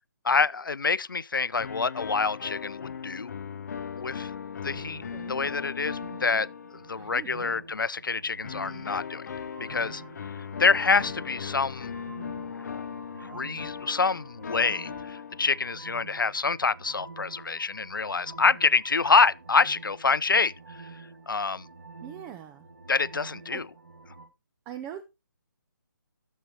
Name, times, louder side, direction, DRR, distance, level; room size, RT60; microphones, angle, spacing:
voice 1, 0.2-3.4 4.0-4.3 4.6-5.0 5.3-6.5 6.9-9.3 9.6-10.0 10.6-11.9 12.4-12.9 13.2-21.7 22.9-23.7, left 4 dB, 90° left, 0.4 m, -26 dB
sound 1, 1.6-7.4 8.4-15.8, left 7 dB, 55° left, 0.7 m, -39 dB
sound 2, 4.6-24.3, right 4 dB, 65° right, 1.8 m, -48 dB
voice 2, 5.1-5.7 7.0-7.6 22.0-22.7 23.5-23.6 24.7-25.0, right 10 dB, 15° right, 0.5 m, -42 dB
14.0 x 7.3 x 3.0 m
figure-of-eight pair, 145°, 11 cm